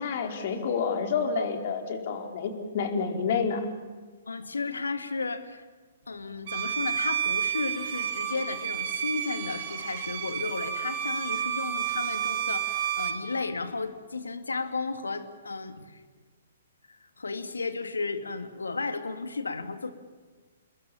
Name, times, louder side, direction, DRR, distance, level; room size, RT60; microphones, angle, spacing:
voice 1, 0.0-3.7, left 5 dB, 50° left, 4 dB, 4.3 m, -29 dB
voice 2, 4.3-5.6 6.1-16.0 16.9-19.9, left 3 dB, 75° left, 9 dB, 2.4 m, -34 dB
Bowed string instrument, 6.5-13.3, right 9 dB, 50° right, 2.7 m, -31 dB
28.5 x 21.5 x 7.3 m, 1.4 s
figure-of-eight pair, 120°, 0 cm